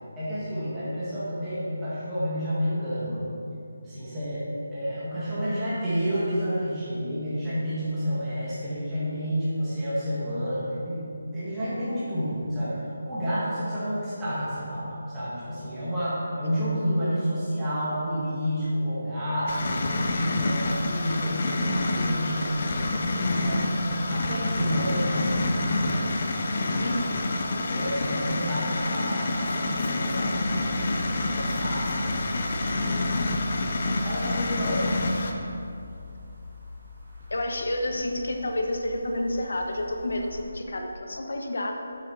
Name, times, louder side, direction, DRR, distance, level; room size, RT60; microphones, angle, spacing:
voice 1, 0.2-3.2 3.8-4.4 4.7-23.8 24.1-25.4 25.8-26.0 26.5-26.9 27.7-32.1 32.5-33.4 33.8-35.0, equal, 10° right, -12 dB, 1.3 m, -30 dB
sound 1, 19.5-35.3, left 2 dB, 30° left, 0.5 m, -28 dB
voice 2, 26.8-27.2 37.3-41.8, left 1 dB, 60° left, 3 dB, 0.9 m, -29 dB
sound 2, 30.1-40.4, left 1 dB, 35° right, 1.4 m, -40 dB
7.1 x 5.9 x 4.5 m, 2.6 s
hypercardioid pair, 180°, 0 cm